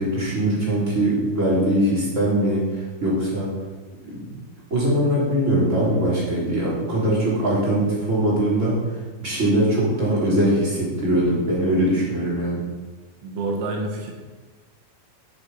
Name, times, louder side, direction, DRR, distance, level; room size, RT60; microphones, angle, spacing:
voice 1, 0.0-3.5 4.0-4.3 4.7-8.8 9.2-12.6, right 1 dB, 15° right, -6 dB, 3.1 m, -21 dB
voice 2, 13.2-14.1, right 2 dB, 70° right, 1 dB, 4.1 m, -27 dB
13.5 x 6.8 x 5.7 m, 1.3 s
omnidirectional pair, 6.0 m